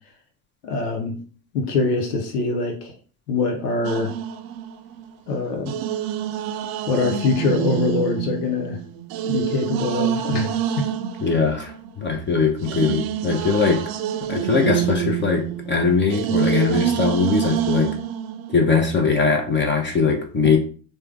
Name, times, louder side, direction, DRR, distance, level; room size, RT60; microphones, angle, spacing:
voice 1, 0.6-1.2 1.5-2.9 3.3-4.1 5.3-5.8 6.9-8.8 9.2-10.9, left 3 dB, 90° left, 4 dB, 0.6 m, -23 dB
sound 1, 3.8-5.1 5.7-12.1 12.6-18.6, right 10 dB, 50° right, 0.5 m, -27 dB
voice 2, 11.2-13.9 14.3-18.0 18.5-20.6, left 4 dB, 25° left, 3 dB, 0.6 m, -21 dB
3.3 x 2.1 x 3.3 m, 0.40 s
hypercardioid pair, 65°, 45 cm